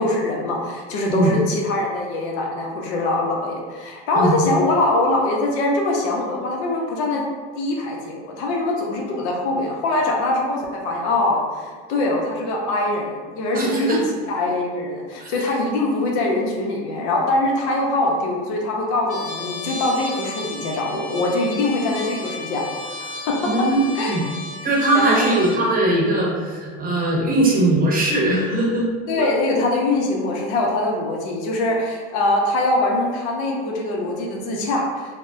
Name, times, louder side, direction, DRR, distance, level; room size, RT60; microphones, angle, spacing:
voice 1, 0.0-7.2 7.6-14.0 14.3-23.5 23.9-24.2 24.9-25.3 29.1-35.2, left 2 dB, 80° left, -1 dB, 0.7 m, -23 dB
voice 2, 13.5-14.0 15.2-15.3 23.4-23.8 24.1-24.2 24.6-28.9 29.2-29.3, right 1 dB, 25° right, -3 dB, 0.7 m, -20 dB
Trumpet, 19.1-25.6, left 3 dB, 25° left, 0.4 m, -34 dB
3.4 x 2.1 x 2.5 m, 1.5 s
supercardioid pair, 110°, 33 cm